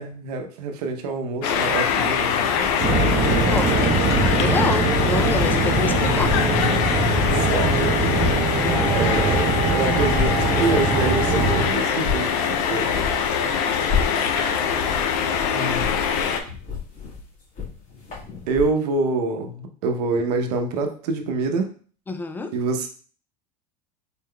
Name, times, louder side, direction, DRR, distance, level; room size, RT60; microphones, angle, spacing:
voice 1, 0.0-2.8 7.3-8.0 8.9-12.9 15.5-15.9 18.5-21.7 22.5-22.9, right 3 dB, 80° right, 5 dB, 0.8 m, -26 dB
sound 1, 1.4-16.4, left 7 dB, 70° left, 0.6 m, -23 dB
sound 2, 2.2-5.8 6.1-7.8 8.0-18.7, left 6 dB, 40° left, 1.8 m, -33 dB
sound 3, 2.8-11.6, right 3 dB, 35° right, 0.8 m, -22 dB
voice 2, 4.4-6.4 22.1-22.5, left 3 dB, 10° left, 8 dB, 0.4 m, -27 dB
4.2 x 3.6 x 2.3 m, 0.42 s
supercardioid pair, 120°, 20 cm